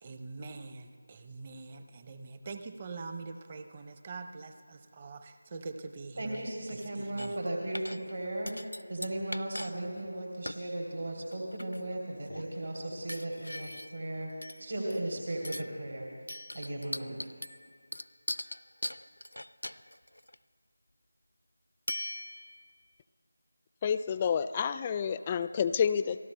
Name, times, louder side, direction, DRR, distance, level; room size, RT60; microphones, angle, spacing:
voice 1, 0.0-7.4, right 3 dB, 25° right, 8 dB, 0.7 m, -44 dB
voice 2, 6.2-14.3 14.6-16.1 16.5-17.1, right 1 dB, 70° right, -2 dB, 3.0 m, -36 dB
sound 1, 7.2-7.5 7.7-8.2 8.5-9.7 10.0-10.1 10.5-10.6 11.3-11.9 12.3-12.6 13.1-14.1 14.4-15.1 15.4-15.8 16.3-20.4 21.9-22.7, left 1 dB, 85° left, 0.4 m, -40 dB
voice 3, 23.8-26.2, left 7 dB, 20° left, 13 dB, 0.3 m, -29 dB
29.5 x 19.5 x 2.2 m, 2.2 s
figure-of-eight pair, 165°, 0 cm